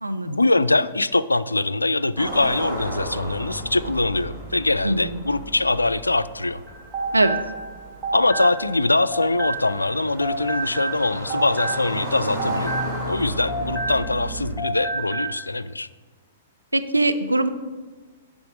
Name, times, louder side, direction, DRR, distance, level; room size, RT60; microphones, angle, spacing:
voice 1, 0.2-6.6 8.1-12.8 13.1-15.9, left 2 dB, 80° left, 16 dB, 0.3 m, -23 dB
sound 1, 2.2-14.6, equal, 30° right, 2.8 m, -34 dB
voice 2, 4.8-5.2 7.1-7.4 16.7-17.5, right 2 dB, 85° right, 9 dB, 0.5 m, -21 dB
sound 2, 6.7-9.9 10.2-14.3 14.6-15.4, right 2 dB, 10° right, 1.3 m, -29 dB
9.8 x 3.7 x 6.2 m, 1.3 s
figure-of-eight pair, 110°, 0 cm